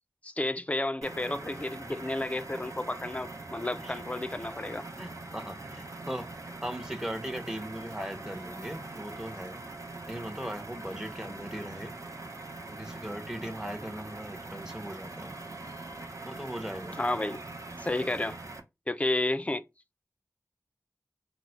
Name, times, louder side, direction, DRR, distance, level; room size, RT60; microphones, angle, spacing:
voice 1, 0.2-4.9 17.0-17.4 17.8-18.4 18.9-19.6, left 2 dB, 20° left, 0.5 m, -31 dB
sound 1, 1.0-18.6, right 2 dB, 60° right, 0.7 m, -43 dB
voice 2, 5.0-9.6 10.1-11.9 12.7-15.3 16.3-17.0, equal, 10° right, 0.9 m, -39 dB
3.8 x 2.1 x 4.4 m
wide cardioid pair, 45°, 6 cm